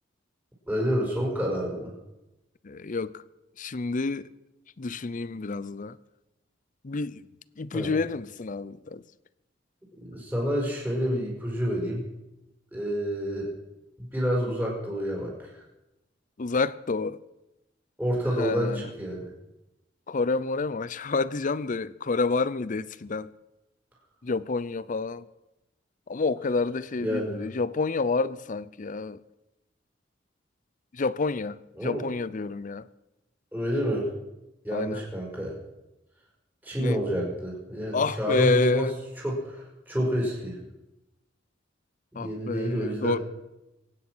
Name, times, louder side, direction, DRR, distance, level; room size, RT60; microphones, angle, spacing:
voice 1, 0.7-1.9 7.7-7.9 10.0-12.1 12.7-13.5 14.0-15.5 18.0-19.3 27.0-27.4 31.8-32.0 33.5-34.1 34.6-35.5 36.6-38.9 39.2-40.6 42.1-43.2, equal, 10° right, 5.1 m, -28 dB
voice 2, 2.6-3.2 3.6-4.3 4.8-6.0 6.8-7.2 7.6-9.0 16.4-17.2 18.4-18.9 20.1-23.3 24.2-25.2 26.1-29.2 30.9-32.9 34.7-35.0 36.8-37.0 37.9-38.9 42.2-43.2, left 3 dB, 45° left, 0.6 m, -28 dB
23.5 x 9.8 x 6.2 m
head